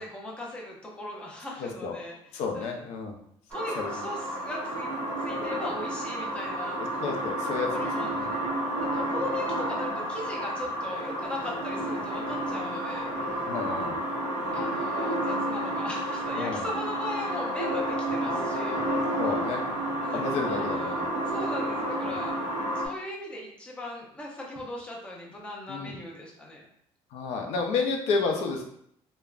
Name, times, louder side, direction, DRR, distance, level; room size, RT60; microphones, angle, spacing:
voice 1, 0.0-2.1 2.5-2.8 3.5-4.9 5.2-6.8 7.7-8.4 8.8-13.1 14.5-18.8 20.0-21.0 21.2-22.3 22.7-26.6, left 1 dB, 10° left, -3 dB, 0.5 m, -38 dB
voice 2, 1.6-2.0 2.3-3.2 3.8-3.9 7.0-8.3 13.5-14.0 16.3-16.7 19.2-19.6 20.1-21.1 25.7-26.0 27.1-28.6, left 4 dB, 70° left, 3 dB, 0.5 m, -31 dB
sound 1, 3.5-22.9, right 1 dB, 10° right, 0.9 m, -30 dB
3.3 x 2.1 x 2.4 m, 0.70 s
cardioid pair, 170°, 11 cm